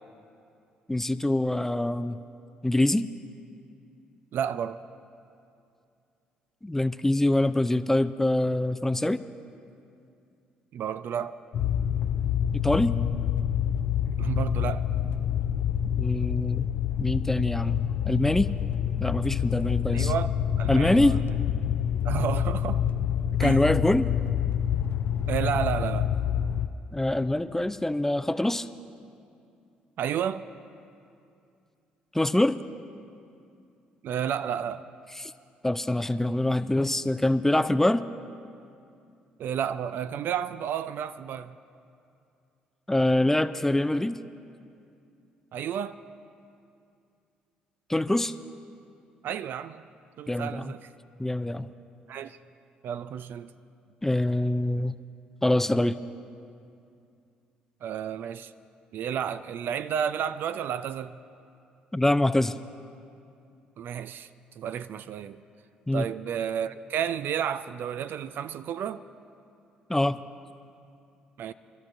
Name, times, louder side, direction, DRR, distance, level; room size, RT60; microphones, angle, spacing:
voice 1, 0.9-2.2 2.6-3.1 6.6-9.2 12.5-12.9 16.0-16.7 17.0-17.8 18.0-18.5 19.0-20.1 20.7-21.2 23.4-24.1 26.9-28.7 32.1-32.6 35.2-35.3 35.6-38.1 42.9-44.2 47.9-48.3 50.3-50.7 51.2-51.7 54.0-54.9 55.4-56.0 61.9-62.6 65.9-66.0 69.9-70.2, left 1 dB, 10° left, 0.4 m, -24 dB
voice 2, 4.3-4.8 10.7-11.4 14.2-14.9 19.9-20.3 20.6-21.4 22.0-22.8 23.4-23.6 25.3-26.1 30.0-30.4 34.0-34.8 39.4-41.6 45.5-46.0 49.2-49.8 50.2-50.9 52.1-52.4 52.8-53.5 57.8-58.5 58.9-61.2 63.8-64.3 64.6-65.4 65.9-69.0 71.4-71.5, right 9 dB, 60° right, 0.4 m, -31 dB
sound 1, 11.5-26.7, left 9 dB, 60° left, 0.5 m, -27 dB
24.5 x 13.0 x 2.5 m
hypercardioid pair, 50°, 4 cm